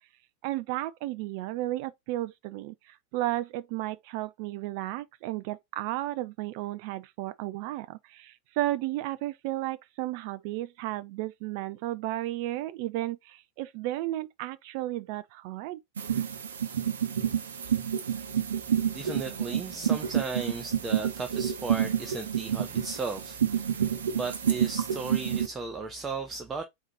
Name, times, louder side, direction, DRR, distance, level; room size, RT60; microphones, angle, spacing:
voice 1, 0.4-15.8, right 16 dB, 45° right, 0.3 m, -33 dB
sound 1, 16.0-25.5, right 9 dB, 65° right, 0.7 m, -29 dB
voice 2, 18.9-26.6, right 4 dB, 15° right, 0.7 m, -36 dB
3.9 x 2.7 x 4.7 m
figure-of-eight pair, 90°, 0 cm